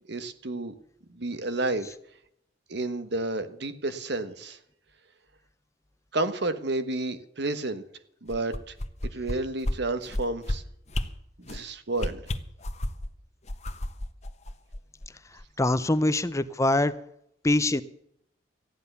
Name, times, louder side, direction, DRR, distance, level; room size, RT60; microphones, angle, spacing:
voice 1, 0.1-0.7 1.1-1.9 2.7-4.6 6.1-7.8 8.2-8.7 9.1-10.6 11.5-12.2, right 2 dB, 65° right, 11 dB, 1.3 m, -30 dB
sound 1, 8.3-9.3 9.6-9.8 10.1-10.5 10.9-11.1 11.4-11.6 12.0-13.1 13.5-15.1 15.4-15.5, left 1 dB, 40° left, 1.2 m, -30 dB
voice 2, 15.6-16.9 17.4-17.8, left 2 dB, 15° left, 12 dB, 0.6 m, -23 dB
14.5 x 10.0 x 6.8 m, 0.73 s
head